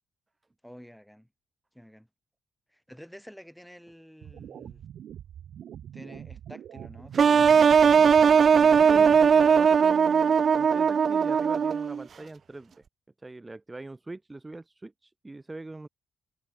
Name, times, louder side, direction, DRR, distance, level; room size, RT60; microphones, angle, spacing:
voice 1, 0.6-1.3 1.7-2.1 2.7-4.8 5.9-8.8, equal, ahead, 7.3 m, -49 dB
sound 1, 4.2-9.2, right 10 dB, 70° right, 2.8 m, -44 dB
sound 2, 7.2-12.0, right 6 dB, 45° right, 0.3 m, -19 dB
voice 2, 8.9-12.7 13.2-15.9, right 2 dB, 15° right, 2.4 m, -42 dB
cardioid pair, 90°, 0 cm